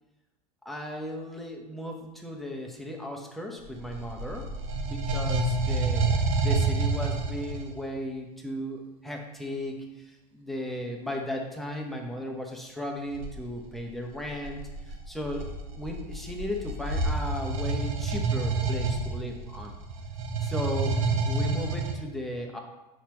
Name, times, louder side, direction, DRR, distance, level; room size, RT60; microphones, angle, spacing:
voice 1, 0.6-4.5 4.8-6.1 6.4-19.7 20.4-22.6, left 1 dB, ahead, 0 dB, 1.0 m, -36 dB
sound 1, 3.7-7.8 13.1-13.3 14.1-21.9, right 3 dB, 60° right, 1.1 m, -28 dB
7.0 x 5.8 x 3.2 m, 1.0 s
figure-of-eight pair, 80°, 20 cm